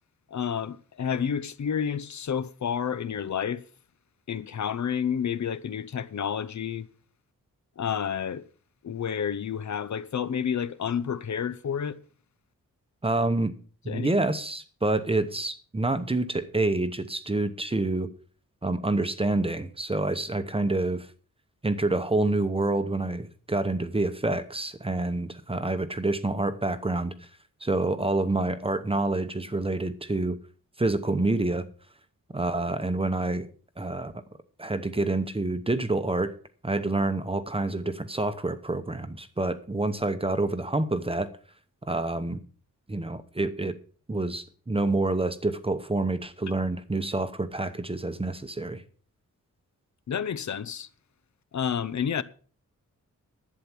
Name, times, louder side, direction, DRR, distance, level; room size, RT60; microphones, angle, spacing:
voice 1, 0.3-3.6 4.3-6.9 7.8-8.5 8.8-12.0 13.9-14.1 50.1-50.9 51.5-52.2, left 8 dB, 60° left, 0.8 m, -30 dB
voice 2, 13.0-13.5 13.8-18.1 18.6-21.1 21.6-27.1 27.6-30.4 30.8-31.6 32.3-33.5 33.8-34.1 34.6-36.3 36.6-41.3 41.8-42.4 42.9-43.7 44.1-48.8, right 2 dB, 15° right, 0.9 m, -27 dB
11.5 x 8.6 x 6.0 m
wide cardioid pair, 180°, 32 cm